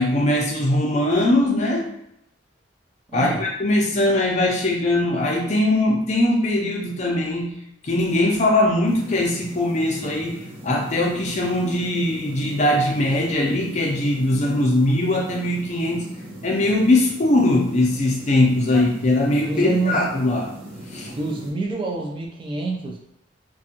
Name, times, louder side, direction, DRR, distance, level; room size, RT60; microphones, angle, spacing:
voice 1, 0.0-1.9 3.1-7.5 7.8-16.1 16.4-20.5 20.9-21.2, left 1 dB, 35° left, 0 dB, 0.5 m, -21 dB
voice 2, 3.1-3.5 18.7-18.9 19.5-20.2 21.1-23.0, right 3 dB, 25° right, 0 dB, 0.3 m, -27 dB
sound 1, 8.8-21.5, right 1 dB, 85° right, 0.9 m, -39 dB
2.5 x 2.3 x 2.7 m, 0.77 s
head